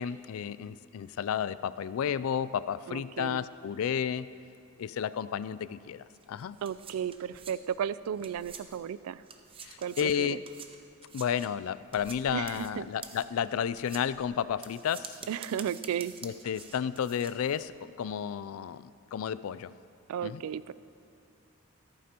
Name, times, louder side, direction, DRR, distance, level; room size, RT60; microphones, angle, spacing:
voice 1, 0.0-4.3 4.8-6.6 9.6-10.4 11.1-15.2 16.2-18.8 19.1-19.7 20.2-20.4, left 8 dB, 70° left, 16 dB, 0.3 m, -32 dB
voice 2, 2.9-3.5 6.6-9.2 9.8-10.4 12.3-12.9 15.3-16.2 20.1-20.7, right 8 dB, 80° right, 17 dB, 0.3 m, -34 dB
sound 1, 6.1-8.9 9.2-17.7, right 6 dB, 25° right, 0.6 m, -48 dB
14.5 x 13.5 x 2.9 m, 2.5 s
head